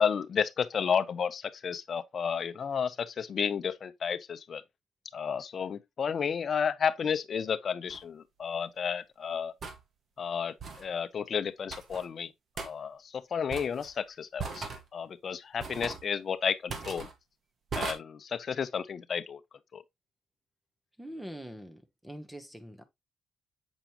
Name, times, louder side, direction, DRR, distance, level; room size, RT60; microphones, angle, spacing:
voice 1, 0.0-4.6 5.1-9.5 10.2-12.3 12.6-17.1 17.7-19.4 19.7-19.8, left 7 dB, 50° left, 0.8 m, -32 dB
sound 1, 7.9-8.0 9.6-9.8 10.6-10.9 11.7-12.0 12.6-12.7 13.5-13.9 14.4-14.8 15.6-16.0 16.7-17.1 17.7-17.9, right 4 dB, 50° right, 1.8 m, -38 dB
voice 2, 21.0-22.8, equal, 5° right, 1.3 m, -44 dB
7.3 x 5.1 x 3.0 m
cardioid pair, 90°, 0 cm